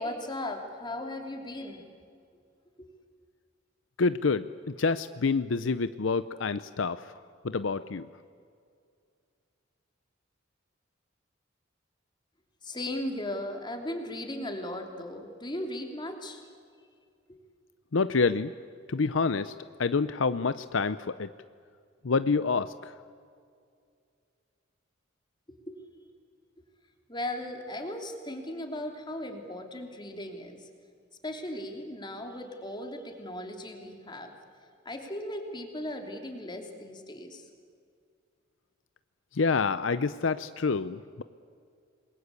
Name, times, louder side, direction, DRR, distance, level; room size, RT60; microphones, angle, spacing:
voice 1, 0.0-1.8 2.8-2.9 12.6-16.4 17.3-17.4 25.5-25.8 27.1-30.7 31.2-34.3 34.8-37.5, left 1 dB, 25° left, 3 dB, 3.2 m, -37 dB
voice 2, 4.0-7.1 7.4-8.0 17.9-18.5 18.9-19.5 19.8-21.3 22.0-22.9 39.3-41.2, left 4 dB, 70° left, 13 dB, 0.6 m, -27 dB
28.0 x 21.5 x 8.3 m, 2.2 s
head